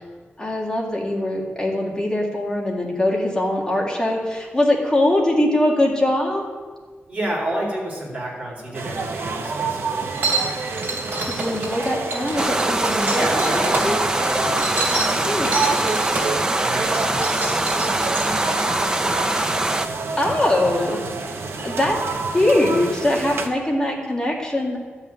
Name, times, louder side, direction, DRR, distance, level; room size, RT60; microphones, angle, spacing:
voice 1, 0.4-6.4 11.3-13.2 13.5-14.0 15.2-15.6 20.2-21.0 21.6-22.0 22.3-24.8, left 1 dB, 15° left, -2 dB, 2.1 m, -22 dB
voice 2, 7.1-10.2 13.0-19.3, right 1 dB, 35° right, -4 dB, 4.1 m, -30 dB
sound 1, 8.7-23.5, right 4 dB, 75° right, 1.0 m, -29 dB
sound 2, 10.1-13.9 14.3-16.4 16.8-18.6, right 3 dB, 55° right, 2.8 m, -27 dB
sound 3, 12.4-19.9, right 2 dB, 15° right, 0.5 m, -23 dB
12.0 x 5.7 x 8.7 m, 1.4 s
wide cardioid pair, 175°, 4 cm